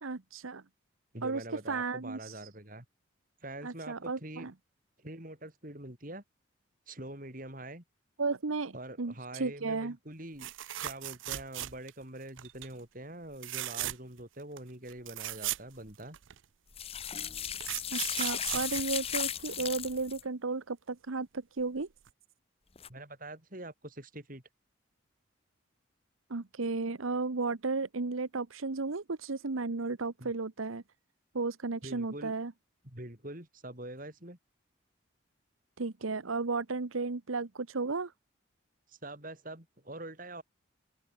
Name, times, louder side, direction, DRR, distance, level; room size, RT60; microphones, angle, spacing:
voice 1, 0.0-0.6 1.2-2.3 3.6-4.5 8.2-10.0 17.9-21.9 26.3-30.8 31.3-32.5 35.8-38.1, right 3 dB, 90° right, 1.0 m, -34 dB
voice 2, 1.1-2.9 3.4-4.5 5.0-6.2 6.9-7.8 8.7-10.5 10.8-16.2 22.9-24.4 30.2-30.3 31.8-32.3 32.8-34.4 38.9-40.4, right 1 dB, 40° right, 4.3 m, -44 dB
sound 1, 10.4-12.0 12.4-12.7 13.3-14.2 14.6-14.7 14.9-16.4 17.2-19.7 21.6-21.8 22.1-22.2, right 14 dB, 70° right, 0.6 m, -38 dB
sound 2, 16.7-20.2 22.8-22.9, left 9 dB, 30° left, 1.4 m, -36 dB
open air
head